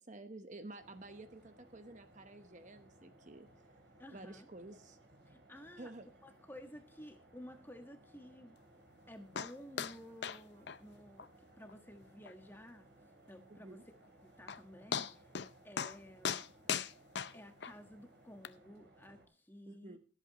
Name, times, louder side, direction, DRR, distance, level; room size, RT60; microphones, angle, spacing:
voice 1, 0.0-3.5 4.1-5.0 5.8-6.1 13.5-13.8 19.7-20.0, right 2 dB, 40° right, 9 dB, 0.9 m, -51 dB
sound 1, 0.8-19.3, right 1 dB, 60° right, 3.0 m, -63 dB
voice 2, 4.0-4.5 5.2-5.9 6.2-8.5 9.1-11.3 11.6-12.9 13.3-13.8 14.4-15.3 15.6-16.5 17.3-20.0, equal, 10° left, 6 dB, 1.3 m, -53 dB
sound 2, 9.4-9.5 9.8-10.0 10.2-10.4 10.7-10.8 11.2-11.3 11.7-11.8 12.3-12.4 14.0-14.1 14.5-14.6 14.9-15.5 15.8-16.0 16.2-17.7 18.4-18.5, left 7 dB, 60° left, 0.6 m, -37 dB
21.0 x 8.3 x 2.9 m, 0.35 s
head